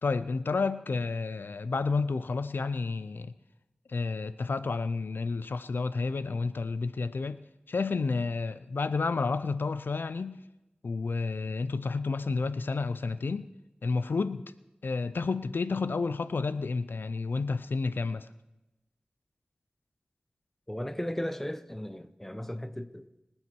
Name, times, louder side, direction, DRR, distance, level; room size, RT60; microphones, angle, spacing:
voice 1, 0.0-3.3 3.9-10.4 10.8-13.5 13.8-14.5 14.8-18.3, left 4 dB, 85° left, 0.5 m, -30 dB
voice 2, 20.7-23.2, left 1 dB, 10° left, 0.8 m, -36 dB
23.5 x 8.8 x 4.6 m
wide cardioid pair, 65°, 3 cm